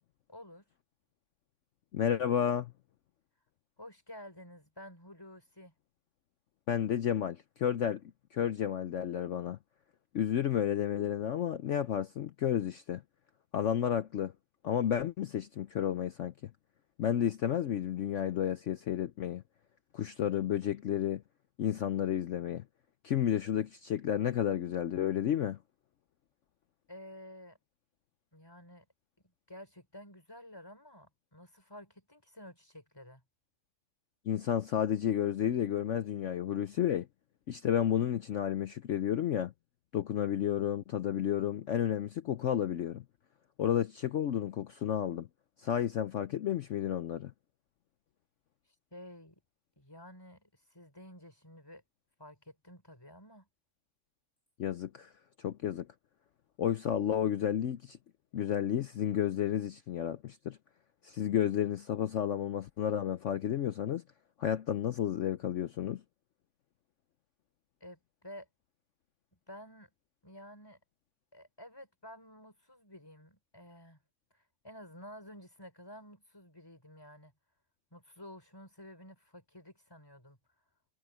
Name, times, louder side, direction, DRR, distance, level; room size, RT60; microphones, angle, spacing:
voice 1, 0.3-0.6 3.8-5.7 26.9-27.6 28.3-28.9 29.5-33.2 48.9-49.4 49.8-51.8 52.2-53.5 67.8-68.5 69.5-69.9 70.2-70.8 71.3-74.0 74.3-77.3 77.9-80.4, equal, 10° left, 5.4 m, -51 dB
voice 2, 1.9-2.7 6.7-8.0 8.3-9.6 10.1-13.0 13.5-14.3 14.6-16.5 17.0-19.4 19.9-21.2 21.6-22.6 23.0-25.6 34.3-37.1 37.5-39.5 39.9-43.0 43.6-45.3 45.6-47.3 54.6-55.1 55.4-55.9 56.6-58.0 58.3-60.6 61.0-64.0 64.4-66.0, left 10 dB, 70° left, 0.7 m, -31 dB
omnidirectional pair, 1.9 m